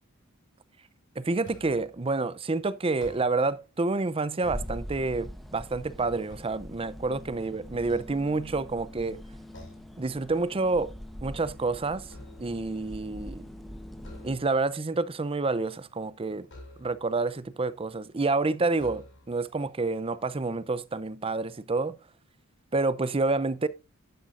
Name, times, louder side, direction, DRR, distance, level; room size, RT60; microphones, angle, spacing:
voice 1, 1.2-9.2 10.0-10.9 11.2-12.1 12.4-13.4 14.2-16.5 16.8-22.0 22.7-23.7, right 3 dB, 25° right, 0.6 m, -28 dB
sound 1, 1.4-2.0 2.8-3.6 4.2-5.3 5.8-7.3 7.8-8.8 9.5-10.0 10.4-10.7 11.0-12.7 14.0-14.8 16.4-17.2 18.0-18.1 18.7-19.5, left 1 dB, 60° left, 6.1 m, -50 dB
sound 2, 4.5-14.4, equal, ahead, 1.0 m, -43 dB
11.5 x 10.5 x 2.5 m
head